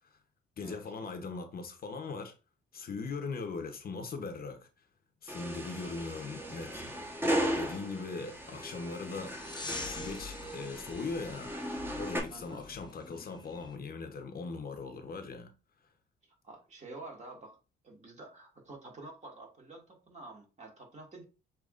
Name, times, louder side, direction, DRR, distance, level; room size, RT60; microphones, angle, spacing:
voice 1, 0.6-2.3 2.7-4.6 5.2-6.8 7.5-9.3 9.8-11.5 12.0-15.5, left 4 dB, 50° left, 0.9 m, -40 dB
sound 1, 5.3-12.2, equal, 10° right, 1.1 m, -36 dB
sound 2, 9.3-13.8, left 4 dB, 20° left, 0.7 m, -45 dB
voice 2, 12.3-12.6 16.2-17.6 17.8-21.2, right 2 dB, 35° right, 2.0 m, -49 dB
6.5 x 3.1 x 2.5 m
cardioid pair, 90°, 20 cm